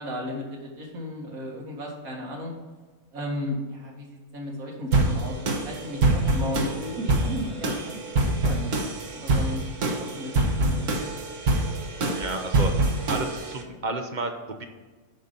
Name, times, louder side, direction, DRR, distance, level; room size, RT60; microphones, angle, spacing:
voice 1, 0.0-2.5 3.1-5.4 5.6-8.7 9.1-10.7, left 1 dB, 85° right, -1 dB, 2.3 m, -35 dB
sound 1, 4.9-13.6, right 2 dB, 65° right, 1.5 m, -25 dB
voice 2, 12.1-12.7 13.1-14.6, right 2 dB, 40° right, 6 dB, 0.8 m, -31 dB
9.1 x 5.6 x 5.3 m, 1.3 s
omnidirectional pair, 1.5 m